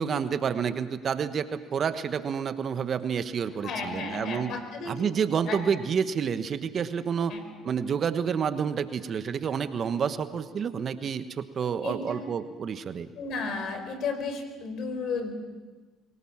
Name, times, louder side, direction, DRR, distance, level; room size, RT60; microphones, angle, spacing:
voice 1, 0.0-4.5 4.9-7.3 7.6-13.1, right 7 dB, 50° right, 11 dB, 1.3 m, -29 dB
voice 2, 3.6-4.9 5.4-5.6 7.3-7.4 11.6-12.2 13.2-15.3, left 4 dB, 60° left, 7 dB, 4.6 m, -33 dB
24.0 x 18.5 x 7.4 m, 1.4 s
hypercardioid pair, 65°, 0 cm